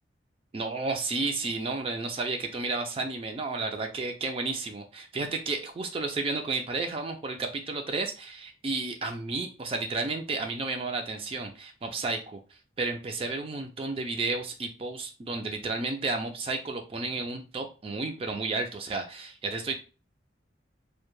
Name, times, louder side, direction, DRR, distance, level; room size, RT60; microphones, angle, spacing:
voice 1, 0.5-12.4 12.8-19.8, right 3 dB, 30° right, 4 dB, 0.3 m, -32 dB
2.1 x 2.1 x 3.0 m, 0.33 s
head